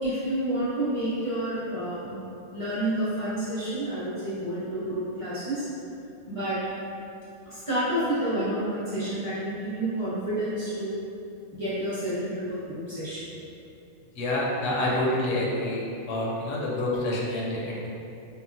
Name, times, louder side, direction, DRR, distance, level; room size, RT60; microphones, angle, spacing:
voice 1, 0.0-2.2 2.5-5.7 6.3-6.6 7.5-10.9 11.5-13.3, right 1 dB, 30° right, -13 dB, 0.9 m, -29 dB
voice 2, 14.2-17.9, left 1 dB, 75° left, -4 dB, 0.9 m, -27 dB
3.7 x 2.0 x 2.6 m, 2.7 s
omnidirectional pair, 1.3 m